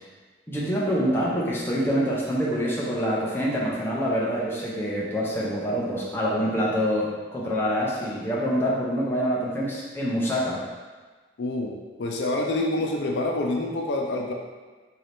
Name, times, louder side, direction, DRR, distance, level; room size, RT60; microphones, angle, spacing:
voice 1, 0.5-10.6, equal, 10° left, -5 dB, 0.6 m, -26 dB
voice 2, 11.4-14.3, left 2 dB, 70° left, 2 dB, 0.4 m, -27 dB
3.8 x 2.8 x 3.3 m, 1.4 s
head